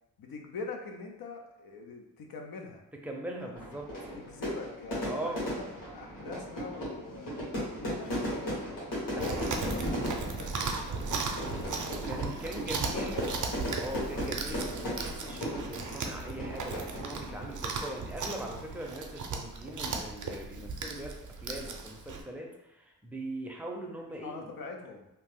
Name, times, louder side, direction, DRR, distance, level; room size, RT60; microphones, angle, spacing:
voice 1, 0.2-2.8 3.4-3.6 4.1-5.6 5.9-8.7 9.1-12.0 12.5-13.4 24.2-25.1, left 4 dB, 80° left, 2 dB, 0.6 m, -43 dB
voice 2, 3.0-3.9 5.0-5.5 9.1-9.6 12.0-13.2 13.8-24.5, right 1 dB, 5° right, 0 dB, 0.5 m, -40 dB
Fire / Fireworks, 3.6-17.6, equal, 65° left, 1.4 m, -37 dB
Chewing mastication, 9.2-22.2, right 4 dB, 60° right, 0.5 m, -37 dB
2.8 x 2.0 x 3.5 m, 0.93 s
wide cardioid pair, 90°, 35 cm